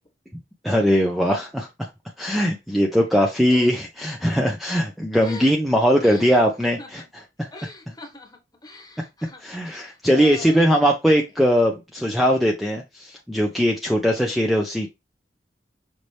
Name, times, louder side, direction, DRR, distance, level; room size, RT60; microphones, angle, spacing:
voice 1, 0.6-1.9 2.2-7.0 7.4-7.5 9.4-14.9, equal, ahead, 0.5 m, -20 dB
voice 2, 5.2-5.5 6.0-6.9 7.5-10.6 14.1-14.3, left 2 dB, 25° left, 1.3 m, -41 dB
5.3 x 2.9 x 3.2 m
head